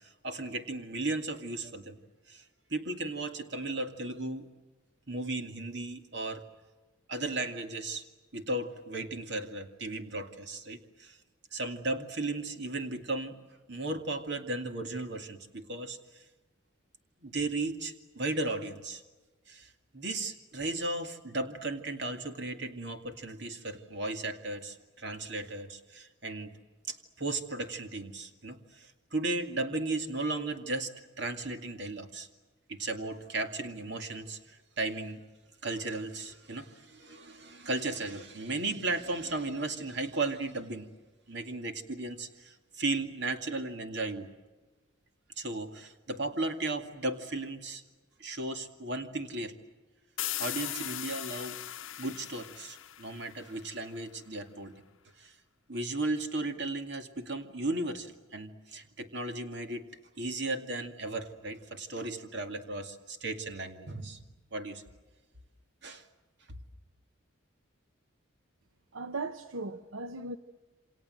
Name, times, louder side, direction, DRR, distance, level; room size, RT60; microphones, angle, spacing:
voice 1, 0.0-2.0 2.3-2.4 2.7-4.5 5.1-6.4 7.1-8.0 8.3-11.2 11.5-13.4 13.7-16.2 17.2-19.0 19.5-26.6 26.9-32.3 32.7-35.2 35.6-40.9 41.3-44.3 45.4-47.8 48.2-49.6 50.4-51.6 52.0-54.7 55.2-55.3 55.7-59.8 60.2-64.2 64.5-64.8 65.8-66.0, right 2 dB, 55° right, 2.4 m, -35 dB
sound 1, 50.2-53.8, left 13 dB, 70° left, 0.8 m, -39 dB
voice 2, 68.9-70.4, right 3 dB, 85° right, 1.0 m, -37 dB
28.5 x 26.5 x 7.8 m
head